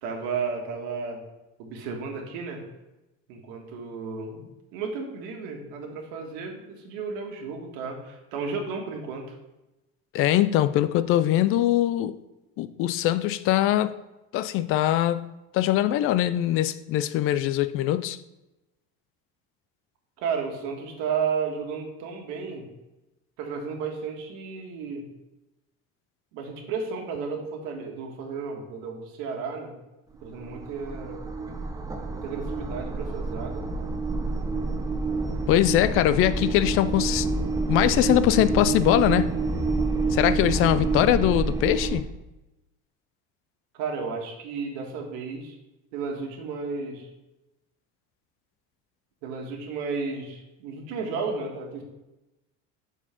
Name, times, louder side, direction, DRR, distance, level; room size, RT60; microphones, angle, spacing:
voice 1, 0.0-1.2 1.6-2.6 3.3-9.3 20.2-22.6 23.4-25.1 26.3-29.7 30.2-31.2 32.1-33.7 43.7-45.6 45.9-47.1 49.2-51.8, right 5 dB, 85° right, 1 dB, 1.7 m, -33 dB
voice 2, 10.1-12.1 12.6-13.9 14.3-15.3 15.5-18.2 35.5-37.3 37.7-39.4 40.1-42.0, left 13 dB, 50° left, 14 dB, 0.4 m, -22 dB
sound 1, 30.1-42.0, right 3 dB, 10° right, 0.6 m, -28 dB
7.1 x 4.5 x 5.7 m, 0.99 s
cardioid pair, 155°, 29 cm